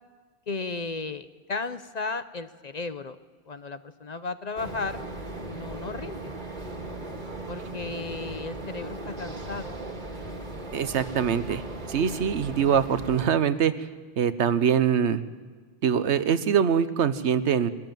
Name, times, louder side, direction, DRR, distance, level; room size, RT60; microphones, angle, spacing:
voice 1, 0.5-3.2 3.5-5.0 5.5-6.3 7.5-9.7, left 3 dB, 45° left, 12 dB, 0.7 m, -34 dB
sound 1, 4.6-13.3, right 2 dB, 45° right, 2.0 m, -37 dB
voice 2, 10.7-11.6 11.9-13.7 14.2-15.2 15.8-17.7, right 8 dB, 85° right, 13 dB, 1.2 m, -23 dB
22.0 x 13.5 x 9.1 m, 1.6 s
omnidirectional pair, 1.1 m